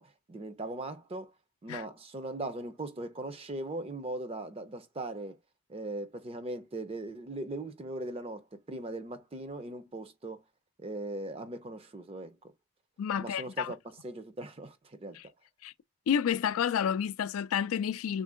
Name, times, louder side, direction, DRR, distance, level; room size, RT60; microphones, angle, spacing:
voice 1, 0.0-1.3 1.6-5.4 5.7-10.4 10.8-12.4 13.2-15.2, right 2 dB, 25° right, 0.4 m, -39 dB
voice 2, 13.0-13.7 15.1-15.2 15.6-15.7 16.1-18.2, left 8 dB, 85° left, 0.3 m, -30 dB
3.6 x 2.5 x 3.6 m
head